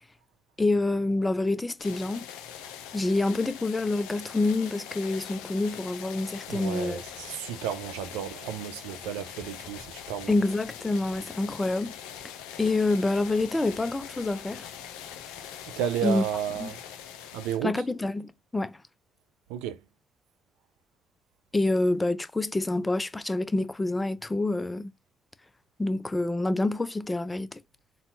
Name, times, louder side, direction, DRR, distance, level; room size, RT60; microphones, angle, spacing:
voice 1, 0.6-2.3 2.9-7.0 10.3-12.0 12.6-14.7 16.0-16.2 16.6-16.7 17.6-18.8 21.5-24.9 25.8-27.6, left 2 dB, 20° left, 0.5 m, -27 dB
sound 1, 1.8-17.6, left 9 dB, 80° left, 0.4 m, -42 dB
voice 2, 6.5-10.3 15.8-16.8 17.3-17.8 19.5-19.8, right 10 dB, 80° right, 0.3 m, -32 dB
4.0 x 2.2 x 2.7 m
hypercardioid pair, 45°, 0 cm